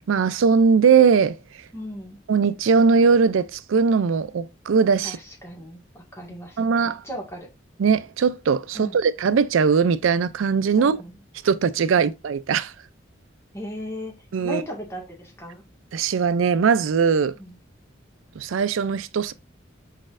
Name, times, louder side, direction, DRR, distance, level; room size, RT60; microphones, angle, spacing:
voice 1, 0.1-1.4 2.3-5.2 6.6-7.0 7.8-11.0 11.4-12.7 14.3-14.6 15.9-17.4 18.4-19.3, right 5 dB, 85° right, 0.4 m, -20 dB
voice 2, 1.7-2.2 5.0-6.6 7.0-7.5 8.7-9.0 10.8-11.2 13.5-14.1 14.4-15.6 17.4-17.6, equal, 15° left, 1.8 m, -36 dB
5.0 x 4.1 x 2.5 m
head